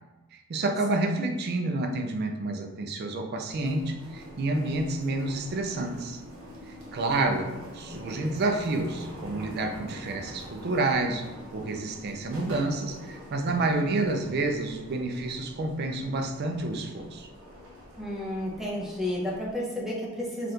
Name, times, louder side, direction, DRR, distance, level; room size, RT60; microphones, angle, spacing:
voice 1, 0.3-6.2 6.7-11.2 11.5-17.3, right 2 dB, 45° right, 4 dB, 0.4 m, -29 dB
sound 1, 3.5-19.5, equal, 65° right, 0.7 m, -45 dB
voice 2, 18.0-20.5, left 1 dB, ahead, -5 dB, 0.6 m, -32 dB
3.4 x 2.4 x 2.8 m, 1.1 s
head